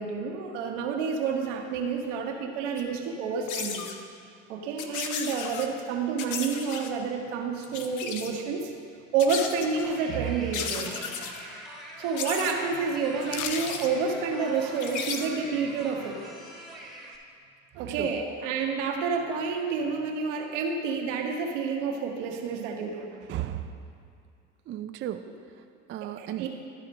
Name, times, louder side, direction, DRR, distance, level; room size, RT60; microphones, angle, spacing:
voice 1, 0.0-3.9 4.5-8.7 9.1-11.0 12.0-16.2 17.8-23.1 26.0-26.5, right 5 dB, 80° right, 2 dB, 1.2 m, -29 dB
sound 1, 2.8-2.9 3.5-4.0 4.8-5.7 6.2-6.9 7.6-8.4 9.2-9.9 10.5-11.4 12.2-12.6 13.2-13.9 14.7-15.3, left 6 dB, 55° left, 0.8 m, -35 dB
sound 2, 9.8-17.2, right 1 dB, ahead, 1.4 m, -44 dB
sound 3, 13.3-13.9 14.2-14.3, left 9 dB, 85° left, 0.6 m, -35 dB
voice 2, 17.7-18.1 23.3-23.8 24.7-25.2 25.9-26.5, right 12 dB, 35° right, 8 dB, 0.4 m, -34 dB
12.5 x 4.2 x 5.1 m, 2.3 s
hypercardioid pair, 85°, 37 cm